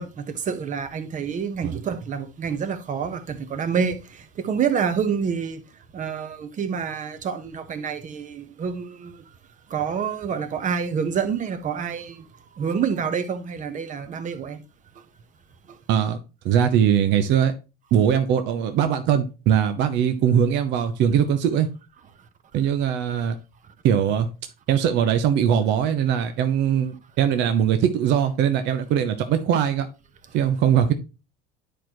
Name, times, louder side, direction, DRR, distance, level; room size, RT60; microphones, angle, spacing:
voice 1, 0.0-4.0 4.4-5.6 5.9-9.1 9.7-12.2 12.6-14.6, right 6 dB, 35° right, 1.2 m, -27 dB
voice 2, 15.9-16.2 16.4-17.5 17.9-21.7 22.5-23.4 23.8-24.3 24.7-29.9 30.3-30.9, right 9 dB, 60° right, 0.8 m, -21 dB
9.9 x 4.7 x 3.0 m
supercardioid pair, 95°, 21 cm